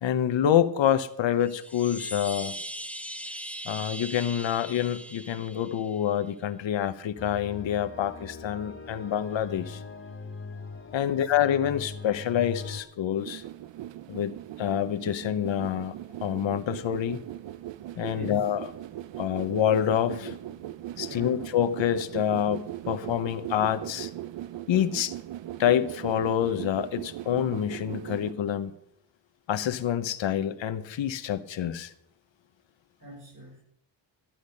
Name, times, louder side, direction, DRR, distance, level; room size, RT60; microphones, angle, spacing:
voice 1, 0.0-2.6 3.6-9.8 10.9-13.4 14.1-15.9 16.2-17.2 18.0-18.7 19.2-20.4 21.0-24.1 24.7-25.1 25.6-28.7 29.5-31.9, left 10 dB, 80° left, 0.9 m, -27 dB
Chime, 1.4-6.1, equal, 5° left, 0.5 m, -39 dB
sound 1, 7.2-12.8, left 4 dB, 30° left, 1.6 m, -41 dB
voice 2, 10.9-11.3 18.0-18.4 21.0-21.4 33.0-33.6, right 1 dB, 45° right, 6.4 m, -44 dB
sound 2, 13.2-28.3, right 13 dB, 75° right, 0.6 m, -39 dB
13.5 x 10.5 x 5.3 m
wide cardioid pair, 140°, 45 cm